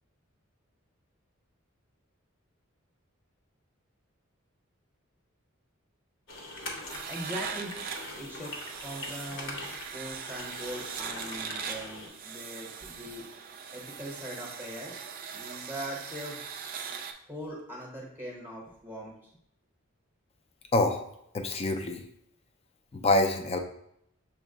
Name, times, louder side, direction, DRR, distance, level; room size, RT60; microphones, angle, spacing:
sound 1, 6.3-12.1, left 2 dB, 65° left, 0.8 m, -43 dB
voice 1, 6.6-7.8 8.2-8.5 8.8-13.2 13.7-15.0 15.3-16.4 17.3-19.3, equal, 10° right, -3 dB, 0.8 m, -41 dB
sound 2, 6.9-17.1, right 6 dB, 45° right, 0.4 m, -40 dB
voice 2, 20.7-21.1 21.3-22.0 22.9-23.6, left 2 dB, 30° left, 6 dB, 0.4 m, -26 dB
6.0 x 2.1 x 3.7 m, 0.74 s
head